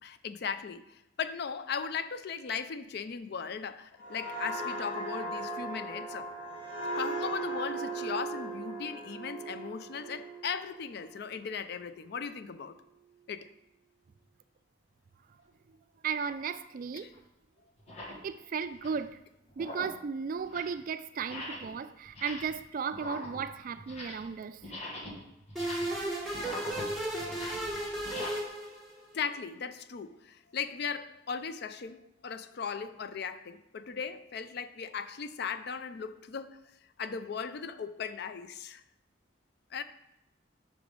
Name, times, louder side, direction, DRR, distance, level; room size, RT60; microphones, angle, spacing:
voice 1, 0.0-6.3 7.0-12.8 13.3-13.5 17.0-17.1 29.1-36.6 37.0-38.8 39.7-39.8, left 6 dB, 60° left, 0.4 m, -37 dB
sound 1, 4.0-11.4 11.8-12.1, right 2 dB, 85° left, 2.4 m, -38 dB
voice 2, 16.0-17.1 18.2-19.2 19.6-24.6, right 6 dB, 45° right, 0.3 m, -35 dB
sound 2, 16.2-16.4 17.1-17.2 17.8-18.2 18.6-19.1 19.5-20.0 20.4-20.8 21.2-21.8 22.0-22.6 22.9-24.3 24.6-28.3, left 1 dB, 35° left, 1.3 m, -43 dB
sound 3, 25.6-29.1, right 1 dB, ahead, 1.6 m, -34 dB
6.0 x 5.0 x 5.2 m
head